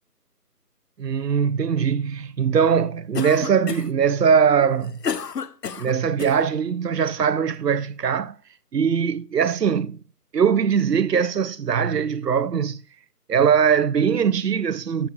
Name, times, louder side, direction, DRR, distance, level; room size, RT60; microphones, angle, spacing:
voice 1, 1.0-5.0 5.7-8.3 8.7-10.0 10.3-12.8 13.3-15.1, right 7 dB, 85° right, 0.6 m, -21 dB
Cough, 3.1-4.0 4.6-6.4, left 6 dB, 85° left, 0.6 m, -30 dB
14.5 x 5.5 x 2.2 m
figure-of-eight pair, 175°, 48 cm